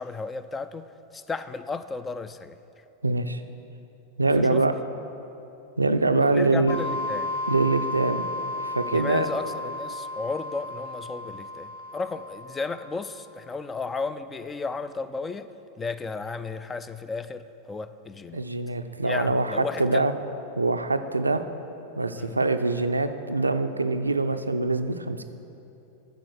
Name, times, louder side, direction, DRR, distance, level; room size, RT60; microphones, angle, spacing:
voice 1, 0.0-2.6 4.4-4.6 6.3-7.3 8.9-15.5 15.8-18.4 19.0-20.0 22.2-22.4, left 4 dB, 15° left, 13 dB, 0.3 m, -34 dB
voice 2, 3.0-3.4 4.2-4.7 5.8-6.8 7.5-8.2 8.6-9.3 18.3-20.1 20.6-21.4 22.0-25.2, right 3 dB, 80° right, 8 dB, 0.4 m, -24 dB
sound 1, 6.7-13.2, left 2 dB, 60° left, 0.7 m, -34 dB
13.0 x 4.6 x 6.3 m, 2.8 s
figure-of-eight pair, 90°, 0 cm